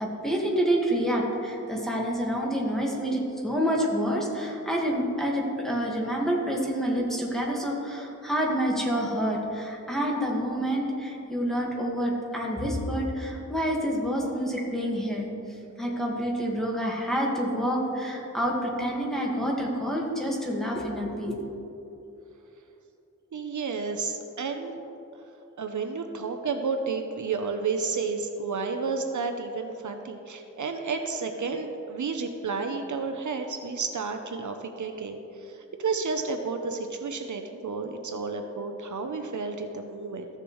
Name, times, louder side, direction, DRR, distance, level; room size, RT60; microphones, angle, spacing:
voice 1, 0.0-15.3 15.8-21.4, equal, ahead, -3 dB, 1.6 m, -28 dB
voice 2, 23.3-24.8 25.6-40.3, right 4 dB, 70° right, 5 dB, 0.7 m, -31 dB
14.5 x 6.6 x 3.1 m, 2.9 s
wide cardioid pair, 90°, 31 cm